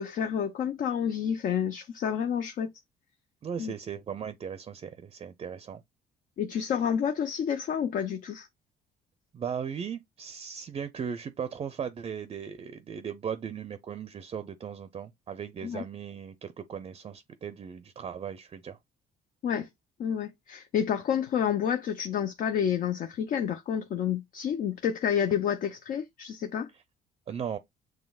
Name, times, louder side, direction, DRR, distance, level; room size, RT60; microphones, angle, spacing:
voice 1, 0.0-2.7 3.6-3.7 6.4-8.5 15.6-15.8 19.4-19.7 20.0-26.7, left 8 dB, 55° left, 0.5 m, -29 dB
voice 2, 3.4-5.8 9.3-18.8 27.3-27.6, right 7 dB, 35° right, 0.5 m, -37 dB
7.4 x 3.1 x 2.3 m
cardioid pair, 110°, 17 cm